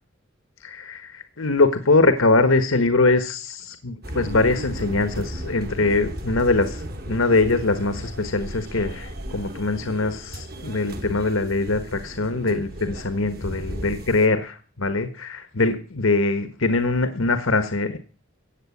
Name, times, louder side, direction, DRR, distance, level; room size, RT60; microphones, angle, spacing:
voice 1, 0.6-18.0, left 3 dB, 85° left, 9 dB, 1.4 m, -22 dB
sound 1, 4.0-14.3, right 1 dB, 50° right, 2.8 m, -35 dB
16.0 x 8.5 x 8.4 m, 0.37 s
head